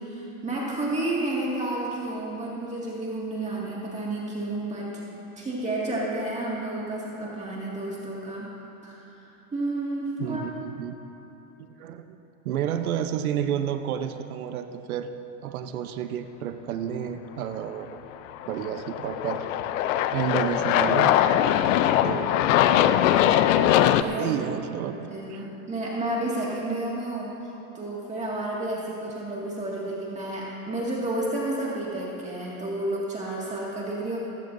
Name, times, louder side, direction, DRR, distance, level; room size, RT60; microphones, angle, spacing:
voice 1, 0.0-5.0 5.4-8.5 8.8-9.1 9.5-10.4 23.5-23.6 24.0-24.3 25.1-34.2, right 2 dB, 15° right, -5 dB, 2.1 m, -31 dB
voice 2, 10.2-11.0 11.6-12.2 12.4-15.1 15.4-18.0 18.5-19.5 20.1-21.1 22.0-22.5 24.2-25.4, right 9 dB, 90° right, 8 dB, 0.9 m, -31 dB
Aircraft, 18.3-24.0, left 11 dB, 65° left, 0.7 m, -21 dB
18.5 x 15.5 x 2.7 m, 3.0 s
supercardioid pair, 120°, 42 cm